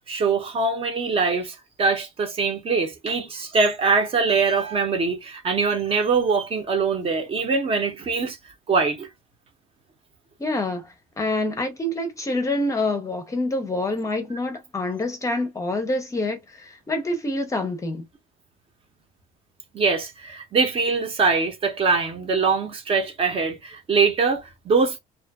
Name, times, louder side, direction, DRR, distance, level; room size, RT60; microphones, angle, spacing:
voice 1, 0.1-8.4 8.7-9.1 19.7-25.0, right 4 dB, 35° right, 0.9 m, -23 dB
voice 2, 10.4-18.0, left 2 dB, 20° left, 0.6 m, -26 dB
2.6 x 2.4 x 2.3 m
cardioid pair, 140°, 16 cm